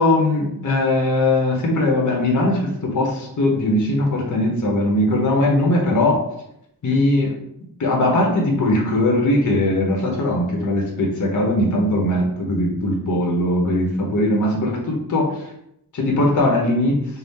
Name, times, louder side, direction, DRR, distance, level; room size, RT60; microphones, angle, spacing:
voice 1, 0.0-6.2 6.8-7.3 7.8-15.4 15.9-17.0, left 1 dB, 45° left, 0 dB, 0.7 m, -20 dB
4.0 x 2.0 x 3.5 m, 0.77 s
wide cardioid pair, 150°, 41 cm